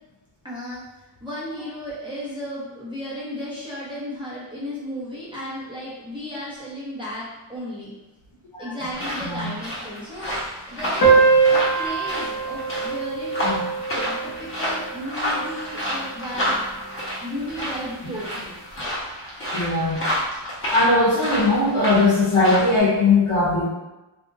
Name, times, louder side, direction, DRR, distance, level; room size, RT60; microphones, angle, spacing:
voice 1, 0.4-0.8 1.2-7.9 8.6-11.2 11.5-13.3 13.9-16.7 17.2-18.5, equal, 10° right, -9 dB, 1.1 m, -34 dB
sound 1, 8.9-22.8, equal, 25° left, 1.1 m, -30 dB
sound 2, 11.0-16.0, right 4 dB, 50° left, 0.7 m, -22 dB
voice 2, 19.5-20.0 20.7-23.7, left 2 dB, 85° left, -6 dB, 0.9 m, -19 dB
2.7 x 2.5 x 2.6 m, 1.0 s
wide cardioid pair, 100°, 49 cm